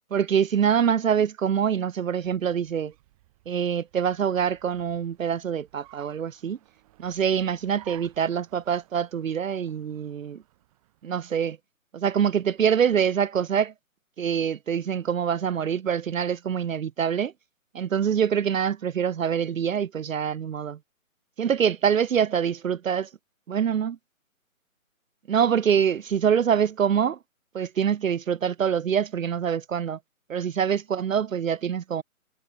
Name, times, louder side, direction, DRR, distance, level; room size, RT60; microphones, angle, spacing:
voice 1, 0.1-2.9 3.5-6.6 7.0-10.4 11.0-11.6 11.9-13.7 14.2-17.3 17.7-20.8 21.4-23.1 23.5-24.0 25.3-27.2 27.5-30.0 30.3-32.0, right 8 dB, 70° right, 0.6 m, -25 dB
Car, 1.9-11.4, right 17 dB, 25° right, 3.2 m, -56 dB
figure-of-eight pair, 145°, 42 cm